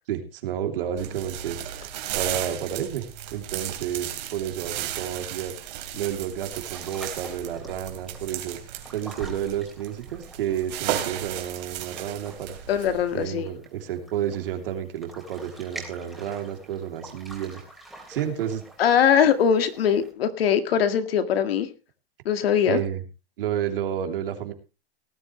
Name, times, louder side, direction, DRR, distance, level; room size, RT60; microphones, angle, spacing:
voice 1, 0.1-1.6 2.1-5.5 5.9-8.6 8.9-12.5 13.1-17.6 18.1-18.6 22.6-23.0 23.4-24.5, right 10 dB, 65° right, 5 dB, 3.2 m, -30 dB
sound 1, 1.0-13.3, right 11 dB, 45° right, 3.0 m, -35 dB
sound 2, 5.4-20.1, right 2 dB, ahead, 3.4 m, -47 dB
voice 2, 12.7-13.5 18.8-21.7 22.3-22.8, left 8 dB, 70° left, 9 dB, 2.0 m, -21 dB
18.0 x 12.0 x 3.2 m, 0.31 s
supercardioid pair, 170°, 30 cm